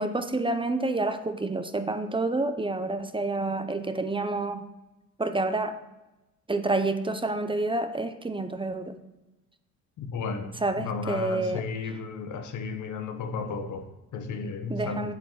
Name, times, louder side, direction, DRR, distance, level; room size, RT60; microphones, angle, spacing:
voice 1, 0.0-4.7 5.2-5.8 6.5-9.0 10.6-11.6 14.7-15.1, right 2 dB, 15° right, 9 dB, 0.7 m, -28 dB
voice 2, 10.0-15.1, left 4 dB, 75° left, 7 dB, 1.2 m, -34 dB
8.0 x 7.8 x 5.0 m, 1.0 s
cardioid pair, 90°, 30 cm